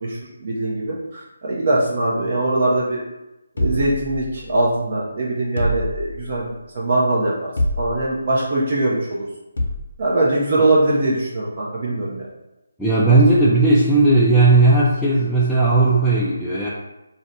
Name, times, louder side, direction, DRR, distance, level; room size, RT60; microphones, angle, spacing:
voice 1, 0.0-3.0 3.6-7.3 7.8-9.2 10.0-12.3, right 2 dB, 45° right, -4 dB, 0.6 m, -21 dB
sound 1, 3.6-4.7 5.6-6.5 7.6-8.3 9.6-10.0, equal, 70° left, 0.7 m, -25 dB
voice 2, 12.8-16.7, right 2 dB, 5° left, -10 dB, 0.3 m, -16 dB
2.6 x 2.1 x 3.9 m, 0.97 s
figure-of-eight pair, 155°, 0 cm